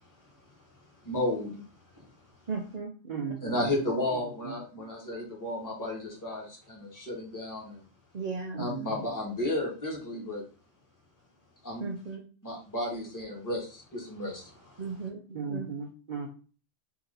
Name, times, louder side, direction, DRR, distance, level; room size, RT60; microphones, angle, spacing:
voice 1, 1.0-1.6 1.9-2.1 3.4-7.8 8.6-10.4 11.6-11.9 12.4-15.0, left 1 dB, 15° left, -3 dB, 1.3 m, -33 dB
voice 2, 2.5-2.9 3.6-3.7 8.1-8.6 11.8-12.2 14.8-15.2 15.5-15.7, right 4 dB, 75° right, 2 dB, 0.3 m, -35 dB
voice 3, 3.0-3.6 8.5-8.9 15.3-16.3, right 6 dB, 45° right, -1 dB, 0.7 m, -36 dB
3.7 x 2.9 x 3.9 m, 0.38 s
omnidirectional pair, 1.4 m